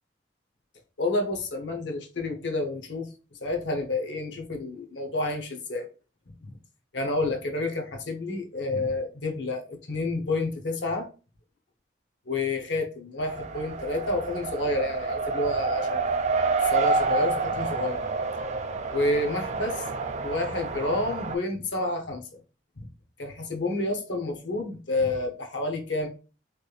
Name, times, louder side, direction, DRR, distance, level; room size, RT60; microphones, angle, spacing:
voice 1, 1.0-3.1 3.4-5.9 6.4-6.6 6.9-11.1 12.3-16.1 16.6-18.0 18.9-19.8 20.2-22.4 22.8-22.9 23.2-26.1, left 2 dB, 80° left, 3 dB, 0.8 m, -29 dB
Race car auto racing, 13.2-21.3, right 4 dB, 40° right, 0.4 m, -28 dB
3.2 x 2.4 x 3.2 m, 0.34 s
head